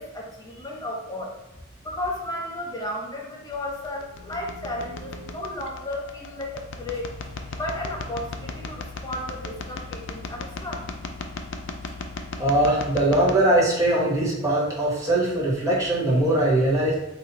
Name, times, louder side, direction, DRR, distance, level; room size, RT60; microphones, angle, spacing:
voice 1, 0.0-1.4 1.8-7.3 7.6-10.9, left 1 dB, 15° left, -2 dB, 0.9 m, -34 dB
sound 1, 3.5-13.3, left 3 dB, 55° left, 0.5 m, -37 dB
voice 2, 12.4-16.9, right 1 dB, 15° right, -6 dB, 1.4 m, -21 dB
4.1 x 3.0 x 4.2 m, 0.94 s
head